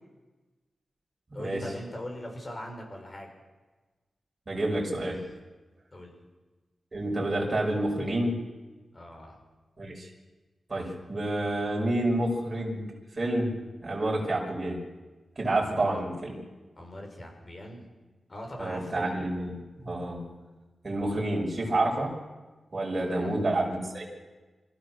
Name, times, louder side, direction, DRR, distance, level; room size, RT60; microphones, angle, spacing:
voice 1, 1.3-3.3 5.9-6.2 8.9-9.4 15.5-16.0 16.8-17.9 18.3-19.1 23.0-23.4, left 1 dB, 35° left, 1 dB, 6.3 m, -41 dB
voice 2, 4.5-5.2 6.9-8.4 9.8-10.1 10.7-12.8 13.2-13.6 13.8-14.8 15.4-16.3 18.6-20.3 20.8-22.2 22.7-24.0, right 1 dB, 40° right, -2 dB, 5.5 m, -29 dB
25.5 x 15.5 x 6.6 m, 1.2 s
wide cardioid pair, 85°, 0 cm